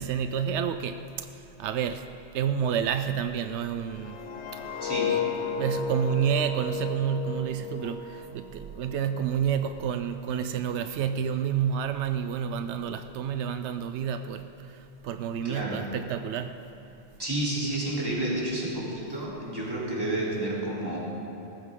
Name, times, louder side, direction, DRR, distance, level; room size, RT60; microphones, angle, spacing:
voice 1, 0.0-4.2 4.5-4.8 5.5-16.6, right 8 dB, 85° right, 9 dB, 0.9 m, -29 dB
sound 1, 3.9-8.9 9.3-9.6, left 5 dB, 80° left, 1.3 m, -33 dB
voice 2, 4.8-5.3 15.4-15.9 17.2-21.0, right 1 dB, 20° right, -7 dB, 3.4 m, -30 dB
18.5 x 14.5 x 3.7 m, 2.9 s
omnidirectional pair, 1.1 m